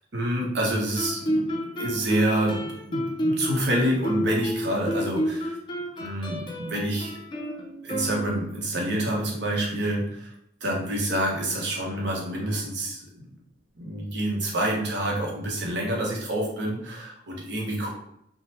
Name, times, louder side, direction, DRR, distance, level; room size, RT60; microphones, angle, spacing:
voice 1, 0.1-5.5 6.0-7.1 7.8-10.3 10.6-13.3 13.8-17.9, right 1 dB, 65° right, -2 dB, 0.9 m, -27 dB
Guitar, 1.0-8.7, equal, 25° left, 0.4 m, -30 dB
3.6 x 2.1 x 2.9 m, 0.76 s
head